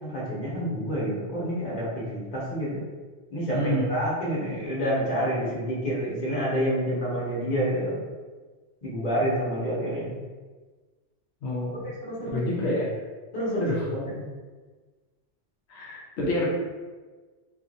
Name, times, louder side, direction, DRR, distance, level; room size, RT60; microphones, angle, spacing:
voice 1, 0.0-2.8 3.3-8.0 8.8-10.1 12.1-12.7 13.3-14.2, equal, 45° left, -7 dB, 1.1 m, -28 dB
voice 2, 3.5-3.9 11.4-11.9 12.3-12.9 13.6-13.8 15.7-16.5, left 1 dB, 80° left, -5 dB, 0.9 m, -28 dB
2.7 x 2.6 x 2.5 m, 1.3 s
omnidirectional pair, 1.1 m